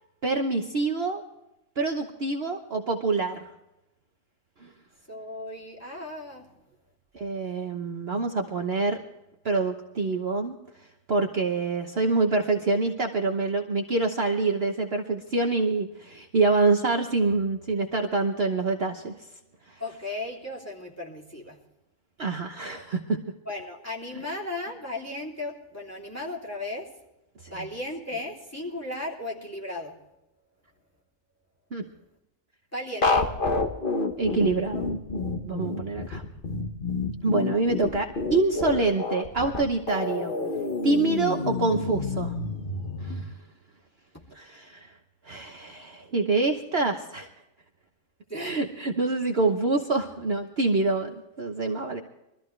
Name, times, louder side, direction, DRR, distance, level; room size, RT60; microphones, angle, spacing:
voice 1, 0.2-1.2 1.8-3.4 4.6-4.7 7.1-9.0 9.4-10.6 11.1-19.1 22.2-23.2 27.4-27.5 31.7-31.8 34.2-34.9 35.4-36.2 37.2-40.3 40.8-42.3 43.0-43.3 44.3-44.9 45.3-47.3 48.4-52.0, right 3 dB, 50° right, 3 dB, 1.2 m, -26 dB
voice 2, 5.1-6.5 19.8-21.6 23.4-26.9 27.5-30.0 32.7-33.3 48.3-48.6, left 1 dB, 10° left, -3 dB, 3.0 m, -35 dB
sound 1, 33.0-43.2, left 3 dB, 40° left, 1.4 m, -29 dB
23.0 x 14.0 x 3.3 m, 0.91 s
omnidirectional pair, 1.5 m